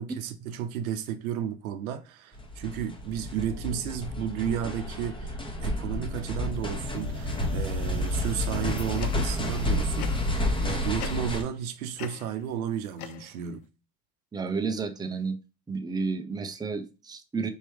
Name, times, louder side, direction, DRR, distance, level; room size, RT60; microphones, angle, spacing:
voice 1, 0.0-10.3 10.6-13.6, right 9 dB, 80° right, 0.7 m, -33 dB
sound 1, 2.3-11.4, left 1 dB, 10° left, 1.2 m, -30 dB
sound 2, 8.2-9.5 10.0-10.5 11.0-11.7 12.0-13.6, left 12 dB, 70° left, 0.6 m, -44 dB
voice 2, 14.3-15.4 15.7-17.5, right 4 dB, 10° right, 0.6 m, -31 dB
4.4 x 3.0 x 3.3 m
hypercardioid pair, 80°, 42 cm